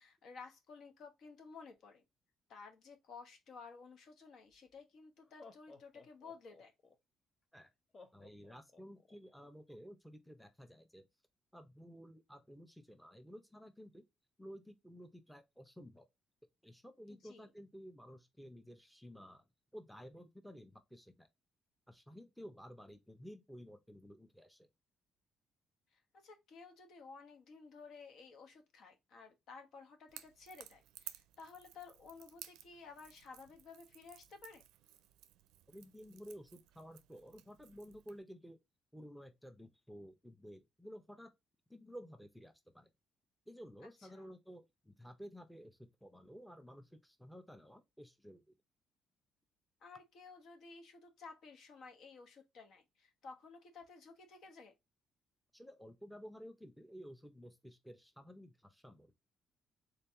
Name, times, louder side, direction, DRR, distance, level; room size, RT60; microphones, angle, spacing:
voice 1, 0.0-2.0 2.5-6.7 17.1-17.5 25.9-34.6 44.1-44.3 49.8-54.7, left 4 dB, 65° left, 1.0 m, -54 dB
Laughter, 4.5-4.6 5.2-6.9 7.9-9.2, left 3 dB, 40° left, 0.7 m, -58 dB
voice 2, 8.1-11.1 11.5-14.0 14.4-16.1 16.6-19.5 19.7-21.3 21.9-24.7 35.7-38.6 38.9-41.3 41.7-42.9 43.5-48.6 55.5-59.1, equal, ahead, 0.7 m, -53 dB
Crackle / Crack, 30.1-38.2, right 13 dB, 90° right, 0.4 m, -56 dB
3.7 x 2.8 x 3.4 m
cardioid pair, 80°, 0 cm